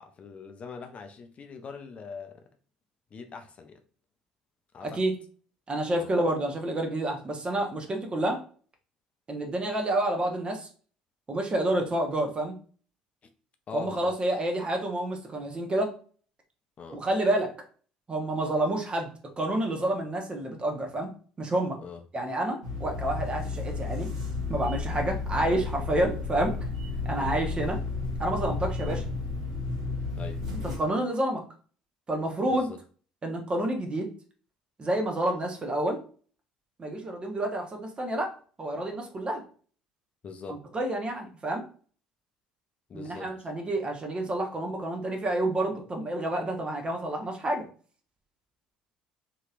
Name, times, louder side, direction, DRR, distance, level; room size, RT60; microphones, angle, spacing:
voice 1, 0.0-2.4 3.1-3.8 4.7-5.0 5.9-6.1 13.7-14.1 16.8-17.0 21.8-22.0 27.1-27.4 30.2-30.4 32.5-32.8 40.2-40.6 42.9-43.3, left 5 dB, 35° left, 0.4 m, -42 dB
voice 2, 4.8-5.1 5.7-8.4 9.3-10.7 11.3-12.5 13.7-16.0 17.0-17.6 18.1-19.1 19.4-21.1 21.4-21.8 22.1-24.1 24.5-26.7 27.0-27.8 28.2-29.1 30.8-31.4 32.1-32.7 33.2-34.1 34.8-36.0 36.8-39.4 40.5-41.6 42.9-47.7, right 1 dB, 30° right, 0.9 m, -29 dB
sound 1, 22.6-30.8, left 4 dB, 75° right, 1.0 m, -32 dB
2.9 x 2.9 x 2.4 m
figure-of-eight pair, 60°, 4 cm